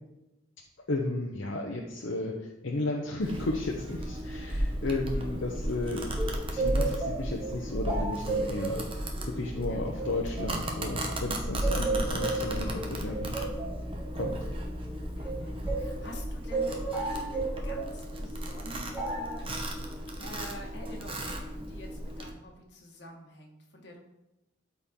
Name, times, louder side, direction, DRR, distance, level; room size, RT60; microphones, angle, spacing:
voice 1, 0.9-6.1 6.5-13.4 14.1-14.4, left 2 dB, 75° left, 0 dB, 0.8 m, -34 dB
Domestic sounds home sounds, 3.2-22.3, equal, 30° right, 1.0 m, -34 dB
voice 2, 5.1-5.5 9.7-10.1 15.1-24.0, left 1 dB, 60° left, 0 dB, 1.7 m, -47 dB
sound 1, 6.2-11.2 11.6-16.0 16.5-17.9 18.9-19.4, right 3 dB, 10° right, 2.3 m, -34 dB
12.5 x 4.3 x 3.8 m, 0.94 s
head